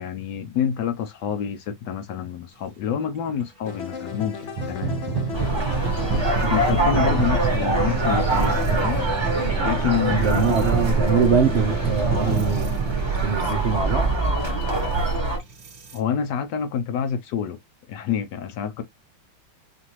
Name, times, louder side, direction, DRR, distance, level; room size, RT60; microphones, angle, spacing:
voice 1, 0.0-5.0 5.6-5.7 6.1-9.0 9.6-10.4 15.1-15.2 15.9-17.6 17.9-18.8, left 8 dB, 75° left, 1.0 m, -28 dB
sound 1, 3.4-3.5 4.4-16.0, right 5 dB, 55° right, 1.4 m, -29 dB
sound 2, 3.7-12.4, left 5 dB, 50° left, 0.9 m, -35 dB
sound 3, 5.3-15.4, right 2 dB, 20° right, 0.9 m, -24 dB
voice 2, 10.1-12.7 13.2-14.2, right 6 dB, 80° right, 0.6 m, -23 dB
5.6 x 2.6 x 3.0 m
omnidirectional pair, 2.3 m